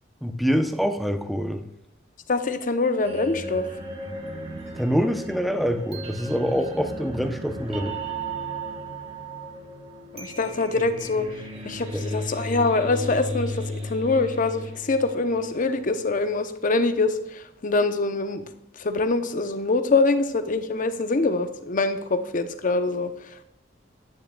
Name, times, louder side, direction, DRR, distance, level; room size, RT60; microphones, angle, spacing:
voice 1, 0.2-1.6 4.8-8.0 11.9-12.0, equal, ahead, 6 dB, 0.6 m, -25 dB
voice 2, 2.3-3.7 10.1-11.3 11.6-18.4 18.8-23.1, left 3 dB, 40° left, 9 dB, 0.6 m, -24 dB
sound 1, 3.0-16.0, right 1 dB, 30° right, 1.0 m, -35 dB
10.5 x 9.4 x 2.2 m, 0.83 s
head